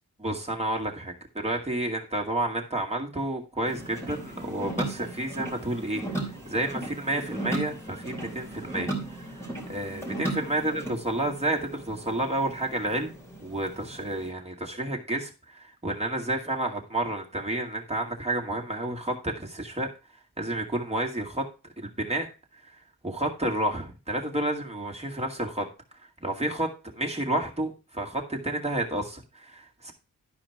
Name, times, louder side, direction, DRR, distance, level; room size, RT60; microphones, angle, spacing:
voice 1, 0.2-13.1 13.4-19.9 20.4-21.4 21.8-22.3 22.6-22.7 23.0-25.7 26.2-29.9, right 1 dB, 15° right, 0 dB, 2.2 m, -30 dB
sound 1, 3.7-14.3, right 2 dB, 5° left, 3.5 m, -37 dB
12.0 x 4.9 x 4.6 m, 0.31 s
wide cardioid pair, 120°, 39 cm